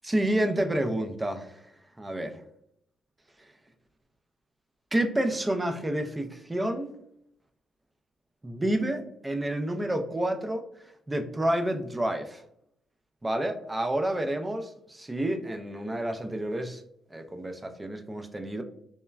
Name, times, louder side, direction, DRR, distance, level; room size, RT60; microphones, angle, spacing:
voice 1, 0.0-1.6 2.0-2.4 4.9-6.9 8.4-10.6 11.1-12.4 13.2-16.8 17.1-18.6, right 1 dB, 15° right, 5 dB, 0.4 m, -29 dB
3.0 x 2.2 x 2.2 m, 0.73 s
cardioid pair, 90°, 0 cm